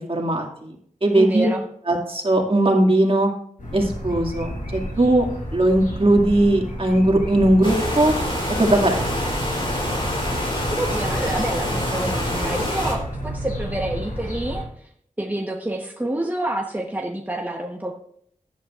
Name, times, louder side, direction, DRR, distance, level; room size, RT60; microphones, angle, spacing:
voice 1, 0.1-0.7 1.0-1.5 1.9-3.3 3.7-5.2 5.5-8.1 8.6-9.4, right 1 dB, 45° right, 1 dB, 2.2 m, -19 dB
voice 2, 1.1-1.6 10.7-14.6 15.2-17.9, right 1 dB, 15° right, 1 dB, 1.0 m, -28 dB
sound 1, 3.6-14.6, equal, 80° left, 5.5 m, -31 dB
sound 2, 7.6-12.9, left 1 dB, 40° left, 3.6 m, -26 dB
15.5 x 11.0 x 2.5 m, 0.67 s
wide cardioid pair, 75°, 14 cm